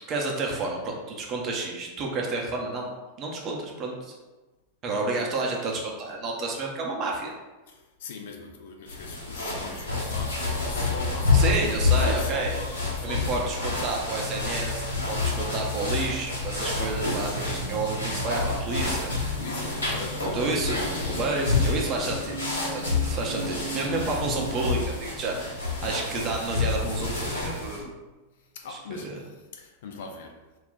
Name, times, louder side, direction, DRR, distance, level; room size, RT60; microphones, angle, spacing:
voice 1, 0.1-2.9 3.2-4.1 4.8-7.3 11.3-12.6 13.0-19.1 20.3-20.8 21.1-22.4 22.7-27.8 28.7-29.2, right 3 dB, 30° right, -1 dB, 0.6 m, -30 dB
voice 2, 7.7-13.4 19.3-21.2 28.4-30.4, left 4 dB, 55° left, 3 dB, 0.4 m, -40 dB
sound 1, 8.9-27.8, left 3 dB, 75° left, 0.8 m, -28 dB
sound 2, 14.1-27.7, left 1 dB, 25° left, 0.9 m, -44 dB
sound 3, 16.2-24.8, right 3 dB, 85° right, 0.4 m, -38 dB
2.3 x 2.1 x 3.9 m, 1.1 s
figure-of-eight pair, 90°, 0 cm